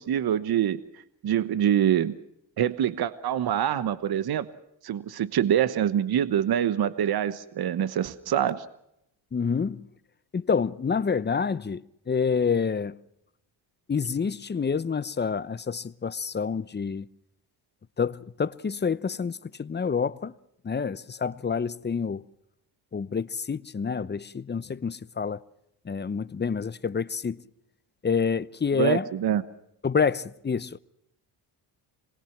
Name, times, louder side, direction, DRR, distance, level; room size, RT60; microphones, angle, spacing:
voice 1, 0.0-2.2 2.6-4.5 4.8-8.6 28.7-29.4, right 10 dB, 60° right, 1.2 m, -25 dB
voice 2, 9.3-9.9 10.3-13.0 13.9-17.1 18.0-20.3 20.6-22.2 22.9-25.4 25.8-27.4 28.0-29.0 29.8-30.8, left 6 dB, 25° left, 0.8 m, -28 dB
26.5 x 21.0 x 6.0 m
cardioid pair, 85°, 42 cm